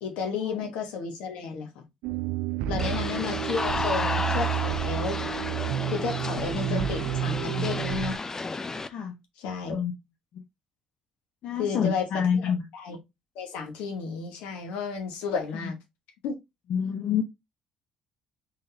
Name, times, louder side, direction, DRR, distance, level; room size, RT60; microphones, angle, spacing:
voice 1, 0.0-1.8 2.7-5.2 5.9-8.2 9.4-9.8 11.6-13.0 13.3-15.8 16.2-16.4, left 5 dB, 85° left, 1.2 m, -32 dB
sound 1, 2.0-8.2, right 12 dB, 85° right, 0.3 m, -30 dB
sound 2, 2.8-8.9, left 3 dB, 25° left, 0.5 m, -32 dB
voice 2, 11.4-12.6 16.7-17.2, left 7 dB, 65° left, 0.7 m, -28 dB
3.8 x 3.7 x 2.7 m
supercardioid pair, 70°, 2 cm